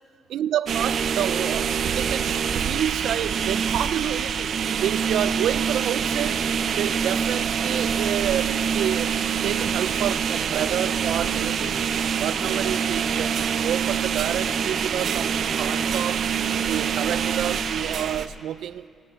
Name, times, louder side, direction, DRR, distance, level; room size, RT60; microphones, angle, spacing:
voice 1, 0.3-4.5 4.8-6.4 6.8-9.2 9.4-11.8 12.2-16.3 16.7-18.9, right 11 dB, 80° right, 0.4 m, -29 dB
sound 1, 0.7-18.3, right 7 dB, 55° right, 0.8 m, -25 dB
19.0 x 18.0 x 8.6 m
cardioid pair, 155°, 0 cm